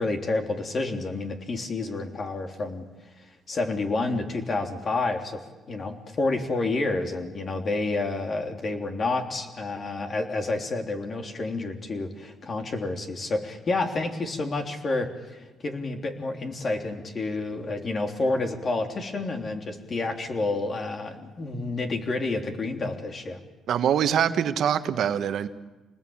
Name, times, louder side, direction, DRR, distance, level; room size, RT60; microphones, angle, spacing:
voice 1, 0.0-2.8 3.2-5.4 5.7-23.4, left 3 dB, 45° left, 3.4 m, -29 dB
voice 2, 23.7-25.5, right 9 dB, 70° right, 1.4 m, -24 dB
27.0 x 20.0 x 8.9 m
cardioid pair, 90°, 0 cm